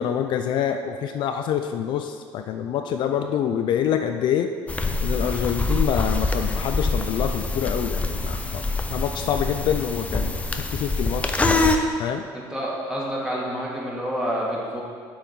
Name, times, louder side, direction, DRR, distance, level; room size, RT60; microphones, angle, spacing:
voice 1, 0.0-4.5 5.0-8.6 8.9-11.4 12.0-12.3, left 9 dB, 60° left, 6 dB, 0.4 m, -26 dB
sound 1, 4.7-11.8, left 2 dB, 15° left, 0.6 m, -25 dB
voice 2, 12.3-14.8, equal, 5° right, -6 dB, 2.1 m, -28 dB
7.3 x 4.8 x 5.3 m, 2.1 s
cardioid pair, 105°, 9 cm